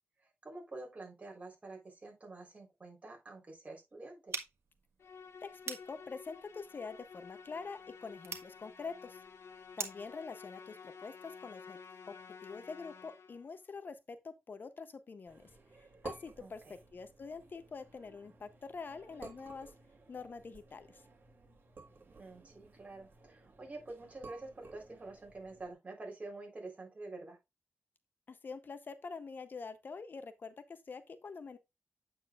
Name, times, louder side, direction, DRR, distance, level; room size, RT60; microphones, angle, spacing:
voice 1, 0.4-4.4 16.4-16.8 22.2-27.4, right 2 dB, 35° right, 3.7 m, -48 dB
sound 1, 4.3-10.1, right 5 dB, 90° right, 1.4 m, -46 dB
Musical instrument, 5.0-13.5, left 5 dB, 90° left, 0.8 m, -52 dB
voice 2, 5.4-9.2 9.8-11.8 12.1-12.2 12.4-19.7 20.1-21.0 28.3-31.6, left 4 dB, 50° left, 0.7 m, -46 dB
sound 2, 15.3-25.7, right 3 dB, 50° right, 2.6 m, -54 dB
8.4 x 7.2 x 2.4 m
wide cardioid pair, 125°, 4 cm